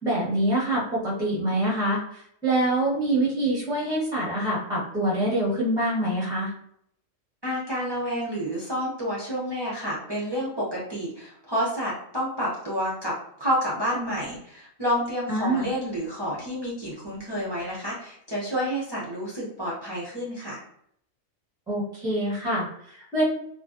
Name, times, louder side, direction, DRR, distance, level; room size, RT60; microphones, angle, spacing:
voice 1, 0.0-6.5 15.3-15.7 21.7-23.2, right 1 dB, 5° right, -6 dB, 0.7 m, -25 dB
voice 2, 7.4-20.6, equal, 35° right, -8 dB, 0.4 m, -29 dB
2.5 x 2.1 x 2.4 m, 0.69 s
omnidirectional pair, 1.3 m